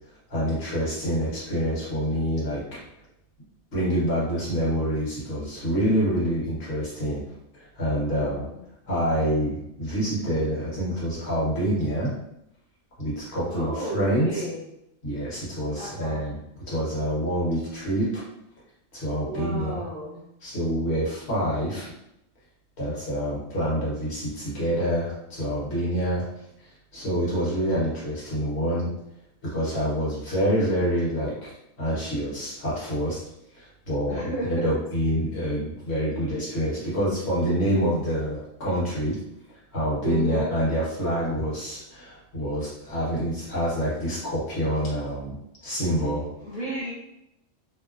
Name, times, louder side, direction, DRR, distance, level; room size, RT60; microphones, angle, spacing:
voice 1, 0.3-2.6 3.7-7.2 7.6-8.4 8.9-12.1 13.0-14.4 15.0-16.4 16.7-18.2 18.9-19.8 20.4-21.9 22.8-26.2 26.6-28.9 29.4-31.5 31.8-33.2 33.5-39.2 39.7-45.3 45.6-46.2, equal, 60° left, -7 dB, 1.2 m, -27 dB
voice 2, 8.1-8.5 13.5-14.7 15.7-16.3 19.2-20.2 34.1-34.7 40.0-40.5 46.4-46.9, right 1 dB, 35° right, -9 dB, 0.7 m, -32 dB
2.8 x 2.0 x 2.4 m, 0.82 s
omnidirectional pair, 1.3 m